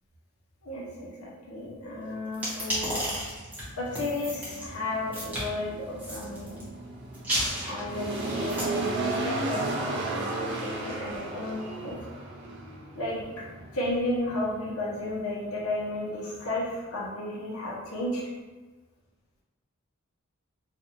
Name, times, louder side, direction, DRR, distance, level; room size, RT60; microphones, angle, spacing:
voice 1, 0.6-3.0 3.8-6.6 7.6-10.0 10.3-12.0 12.9-13.4 13.7-18.2, left 1 dB, 80° left, -4 dB, 0.8 m, -33 dB
sound 1, 2.3-4.7 5.1-5.5 6.0-6.6 7.1-8.6, equal, 10° right, 0.9 m, -32 dB
sound 2, 2.6-17.1, right 2 dB, 55° right, 0.5 m, -35 dB
2.5 x 2.4 x 2.8 m, 1.3 s
head